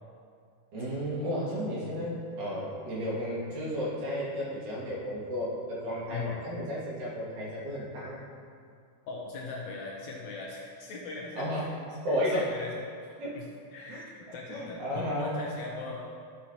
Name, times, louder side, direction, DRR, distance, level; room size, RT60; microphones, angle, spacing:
voice 1, 0.7-8.2 11.4-11.7 12.0-12.5 13.2-13.4 13.9-15.4, equal, 70° right, -7 dB, 3.5 m, -33 dB
voice 2, 9.1-11.7 12.1-12.7 13.3-13.4 13.7-16.1, left 4 dB, 70° left, -2 dB, 1.9 m, -40 dB
11.5 x 7.8 x 2.9 m, 2.3 s
omnidirectional pair, 3.8 m